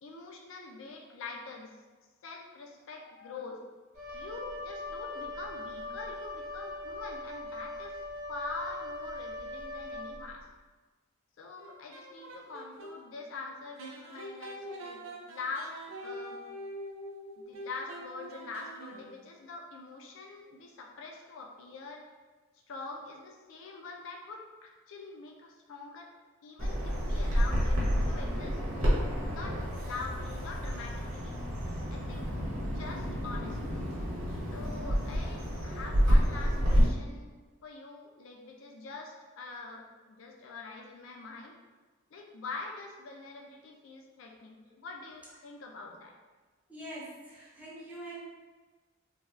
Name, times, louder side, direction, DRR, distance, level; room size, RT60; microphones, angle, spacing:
voice 1, 0.0-1.8 2.2-3.6 4.1-8.0 8.3-10.5 11.4-15.7 16.0-16.4 17.4-22.0 22.7-26.1 26.4-27.8 28.1-28.6 29.3-31.4 31.9-32.2 32.6-33.7 34.5-37.3 37.6-41.5 42.1-46.1, left 3 dB, 65° left, 0 dB, 0.3 m, -44 dB
Wind instrument woodwind instrument, 3.9-10.5, left 2 dB, 35° right, 0.9 m, -40 dB
sound 1, 11.6-13.0 13.8-19.2, equal, 70° right, 0.4 m, -44 dB
Bird vocalization bird call bird song, 26.6-36.8, equal, 90° right, 0.9 m, -29 dB
voice 2, 46.7-48.2, right 1 dB, 5° right, -7 dB, 0.6 m, -44 dB
3.2 x 2.2 x 2.3 m, 1.3 s
head